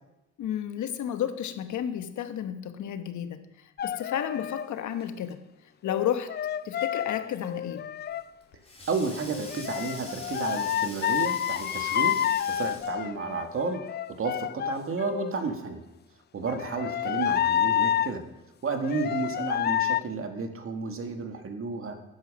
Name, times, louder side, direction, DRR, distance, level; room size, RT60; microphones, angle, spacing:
voice 1, 0.4-5.4 5.8-6.3 6.6-7.9, left 10 dB, 70° left, 9 dB, 1.2 m, -32 dB
sound 1, 3.8-4.7 5.9-8.2 9.3-15.3 16.5-18.1 18.8-20.0, left 10 dB, 35° left, 0.4 m, -29 dB
Sink (filling or washing), 8.0-13.1, left 2 dB, 20° left, 4.6 m, -44 dB
voice 2, 8.9-15.8 16.3-18.2 18.6-22.0, right 4 dB, 45° right, 5 dB, 1.9 m, -32 dB
10.0 x 9.4 x 6.5 m, 0.95 s
cardioid pair, 90°, 30 cm